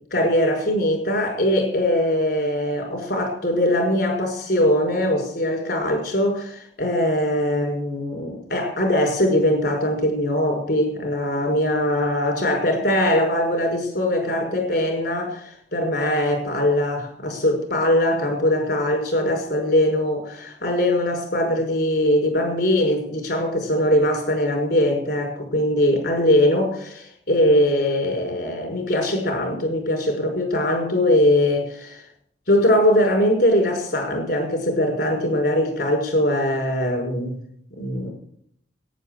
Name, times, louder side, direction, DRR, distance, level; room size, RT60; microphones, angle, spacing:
voice 1, 0.1-32.0 32.5-37.4 37.8-38.1, left 1 dB, 65° left, 2 dB, 5.6 m, -21 dB
11.0 x 9.9 x 8.0 m, 0.68 s
head